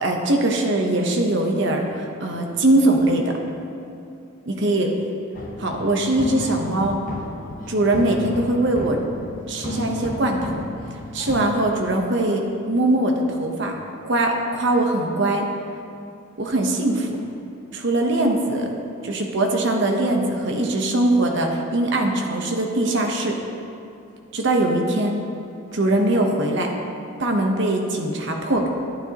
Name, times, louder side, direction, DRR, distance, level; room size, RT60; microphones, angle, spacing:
voice 1, 0.0-3.4 4.5-4.9 5.6-6.9 7.7-9.0 9.5-10.6 11.1-13.8 14.0-15.4 16.4-17.2 17.7-18.7 19.0-23.4 24.3-25.2 25.7-26.7 27.2-28.7, right 1 dB, 60° right, 2 dB, 0.9 m, -21 dB
sound 1, 5.3-11.5, left 1 dB, 40° left, 0.9 m, -32 dB
11.0 x 9.5 x 2.9 m, 2.7 s
head